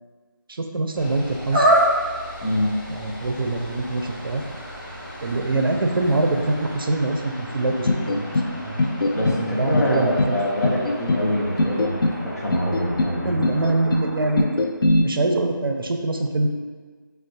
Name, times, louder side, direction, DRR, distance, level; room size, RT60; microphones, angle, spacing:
voice 1, 0.5-1.7 2.9-4.4 5.2-8.8 9.4-10.4 13.2-14.7 15.0-16.5, right 2 dB, 80° right, 4 dB, 0.4 m, -24 dB
sound 1, 0.9-14.4, equal, 25° left, 1.0 m, -38 dB
sound 2, 1.5-2.2 2.8-2.9 3.3-6.9, right 1 dB, 20° right, 0.4 m, -24 dB
voice 2, 2.4-2.8 9.1-13.4, left 1 dB, 45° left, -3 dB, 0.6 m, -25 dB
sound 3, 7.9-8.5 8.8-9.4 9.7-10.3 10.6-11.2 11.6-12.2 12.5-13.1 13.4-14.0 14.4-15.0, left 2 dB, 90° left, 0.4 m, -21 dB
4.4 x 2.0 x 2.6 m, 1.5 s
figure-of-eight pair, 170°, 12 cm